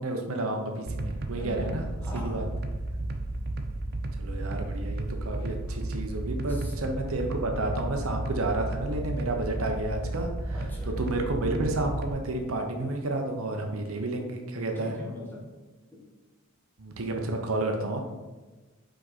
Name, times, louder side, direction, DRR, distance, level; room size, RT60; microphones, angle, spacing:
voice 1, 0.0-1.9 2.1-2.4 4.2-15.0 16.8-18.0, right 2 dB, 80° right, 3 dB, 0.9 m, -31 dB
sound 1, 0.9-12.1, right 2 dB, 50° right, 0.5 m, -33 dB
voice 2, 1.4-1.7 2.0-2.5 5.7-5.8 6.4-6.8 10.5-10.9 14.7-15.4, left 1 dB, 10° left, -4 dB, 1.3 m, -41 dB
5.2 x 5.1 x 4.2 m, 1.2 s
head